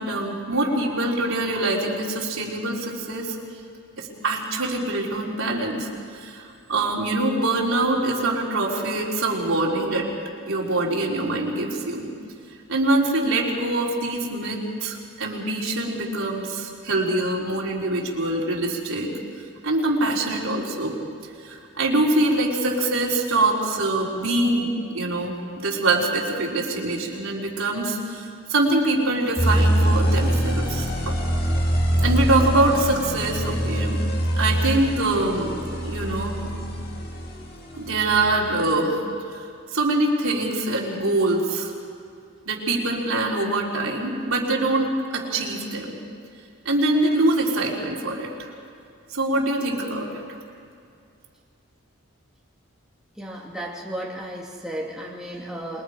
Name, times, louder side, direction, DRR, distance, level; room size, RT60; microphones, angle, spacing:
voice 1, 0.0-3.4 4.0-6.4 6.7-10.1 10.5-12.1 12.7-19.1 19.6-21.0 21.4-31.2 32.0-34.0 34.4-36.5 37.7-39.0 39.3-39.4 39.7-41.7 42.5-45.9 46.6-48.5 49.1-50.4, right 2 dB, 80° right, -3 dB, 4.0 m, -24 dB
sound 1, 29.4-38.5, right 1 dB, 45° left, 2.3 m, -24 dB
voice 2, 53.2-55.8, right 1 dB, 5° right, -4 dB, 2.5 m, -34 dB
27.0 x 22.0 x 5.1 m, 2.3 s
head